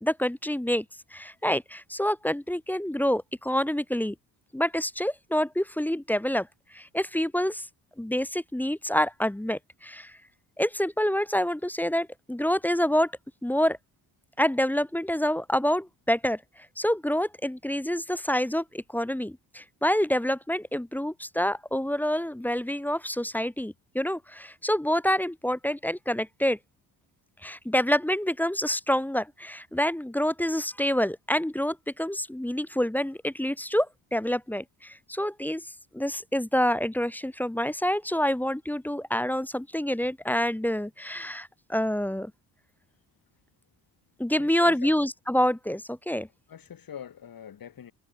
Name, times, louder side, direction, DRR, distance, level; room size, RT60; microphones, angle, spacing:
voice 1, 0.0-0.8 1.1-4.1 4.5-6.5 6.7-7.6 8.0-10.1 10.6-13.1 13.4-13.8 14.4-16.4 16.8-26.6 27.4-35.6 35.9-42.3 44.2-46.3, equal, 5° left, 0.6 m, -27 dB
voice 2, 44.4-44.9 46.5-47.9, left 8 dB, 50° left, 2.4 m, -43 dB
supercardioid pair, 70°, 45 cm